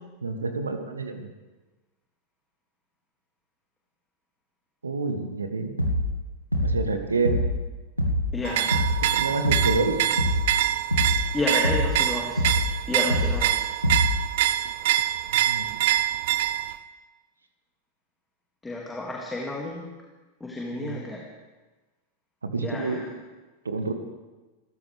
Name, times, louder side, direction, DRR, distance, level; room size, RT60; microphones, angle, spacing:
voice 1, 0.2-1.3 4.8-5.8 6.6-7.4 9.1-10.1 15.5-15.7 20.8-21.0 22.4-23.0 23.6-23.9, right 3 dB, 75° right, 8 dB, 1.4 m, -28 dB
sound 1, 5.8-6.2 6.5-6.9 7.2-7.6 8.0-8.4 8.7-9.1 9.4-9.8 10.2-10.6 10.9-11.3 11.6-12.0 12.4-12.7 13.1-13.5 13.8-14.2, left 1 dB, 90° left, 1.6 m, -24 dB
voice 2, 8.3-8.9 11.3-12.5 12.9-13.7 18.6-19.9 20.4-21.2 22.6-23.1, left 2 dB, 10° left, -2 dB, 2.4 m, -31 dB
sound 2, 8.4-16.8, right 12 dB, 55° right, 0.6 m, -25 dB
26.5 x 14.5 x 3.5 m, 1.2 s
figure-of-eight pair, 90°, 0 cm